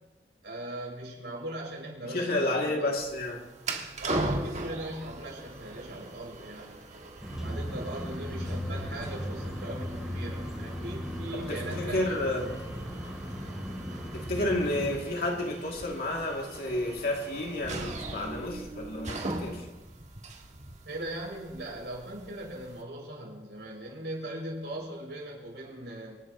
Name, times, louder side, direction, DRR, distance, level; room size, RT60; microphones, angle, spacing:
voice 1, 0.4-3.0 4.0-6.8 7.3-12.2 20.8-26.2, right 1 dB, 85° right, 6.4 m, -39 dB
voice 2, 2.0-3.4 11.3-12.6 14.1-19.7, left 1 dB, 60° left, 2.7 m, -31 dB
sound 1, 3.0-22.8, right 2 dB, 40° right, 1.5 m, -40 dB
sound 2, 7.2-15.0, equal, ahead, 3.4 m, -37 dB
26.5 x 11.0 x 3.1 m
head